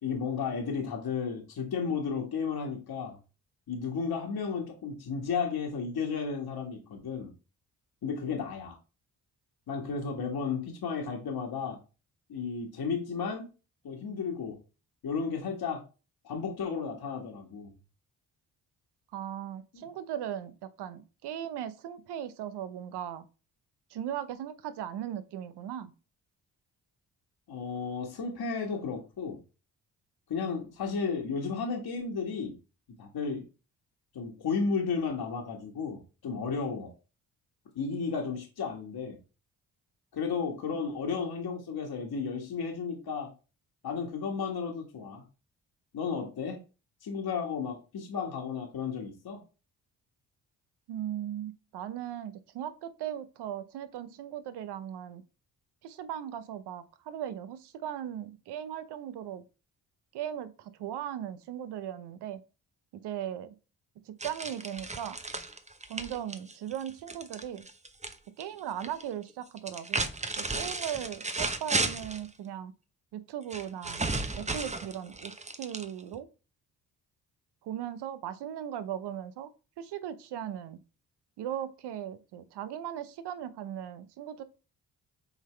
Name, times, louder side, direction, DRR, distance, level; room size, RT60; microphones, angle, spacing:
voice 1, 0.0-3.2 3.7-7.3 8.0-8.8 9.7-11.8 12.3-13.5 13.8-14.6 15.0-15.8 16.2-17.7 19.7-19.9 27.5-29.4 30.3-32.5 33.0-33.5 34.1-36.9 37.7-39.2 40.1-43.3 43.8-45.2 45.9-46.6 47.0-49.4, left 5 dB, 60° left, 1.7 m, -33 dB
voice 2, 19.1-23.3 23.9-25.9 50.9-55.2 55.8-59.4 60.1-62.4 63.0-63.5 64.1-65.2 65.9-67.7 68.4-70.1 70.4-72.7 73.1-74.1 74.4-75.3 75.6-76.3 77.6-79.5 79.8-80.8 81.4-84.4, right 10 dB, 65° right, 0.8 m, -38 dB
sound 1, 64.2-68.1 68.4-69.0 69.6-72.3 73.5-76.2, right 3 dB, 15° right, 0.9 m, -34 dB
7.1 x 4.0 x 3.3 m
hypercardioid pair, 45°, 43 cm